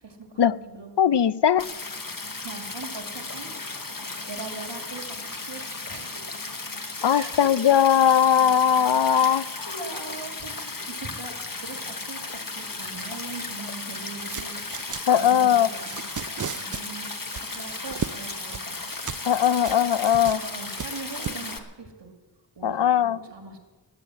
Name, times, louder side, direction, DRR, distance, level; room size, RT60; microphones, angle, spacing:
voice 1, 0.0-0.9 2.4-3.5 4.3-6.4 7.1-7.5 9.1-11.3 11.6-14.6 15.1-16.0 16.5-17.1 17.5-18.8 20.4-22.1 22.6-23.6, right 3 dB, 90° right, 4 dB, 2.0 m, -41 dB
voice 2, 1.0-1.6 7.0-9.7 15.1-15.7 19.2-20.4 22.6-23.2, left 9 dB, 75° left, 17 dB, 0.5 m, -20 dB
Stream, 1.6-21.6, left 3 dB, 50° left, 1.3 m, -35 dB
sound 1, 14.2-21.6, right 7 dB, 45° right, 0.5 m, -37 dB
18.5 x 9.0 x 7.5 m, 1.3 s
wide cardioid pair, 45°, 42 cm